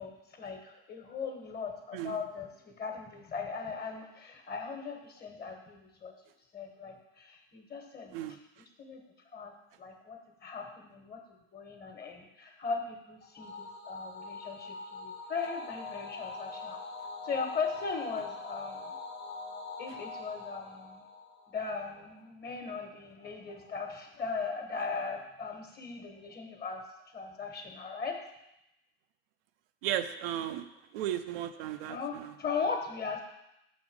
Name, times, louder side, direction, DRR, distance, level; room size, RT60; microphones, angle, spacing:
voice 1, 0.0-6.1 6.5-8.2 8.8-9.0 9.3-11.2 11.5-16.8 17.2-19.0 19.8-21.0 21.5-28.2 31.9-33.2, left 5 dB, 35° left, 4 dB, 1.3 m, -38 dB
sound 1, 13.4-22.0, left 3 dB, 90° left, 1.1 m, -43 dB
voice 2, 29.8-30.7 30.9-32.3, right 11 dB, 85° right, 9 dB, 0.6 m, -35 dB
5.9 x 4.1 x 6.1 m, 0.87 s
supercardioid pair, 105°, 29 cm